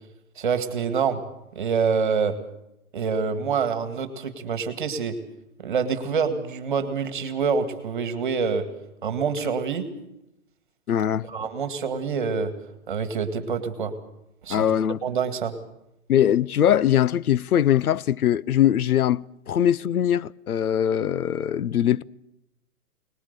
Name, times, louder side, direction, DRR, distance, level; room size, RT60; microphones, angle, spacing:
voice 1, 0.4-1.2 1.5-2.4 2.9-5.2 5.6-8.7 9.0-9.9 11.3-12.5 12.9-13.9 14.4-14.7 15.0-15.5, right 6 dB, 35° right, 2.0 m, -26 dB
voice 2, 10.9-11.3 14.5-15.0 16.1-22.0, left 10 dB, 85° left, 0.8 m, -21 dB
21.5 x 20.0 x 6.8 m
hypercardioid pair, 175°, 43 cm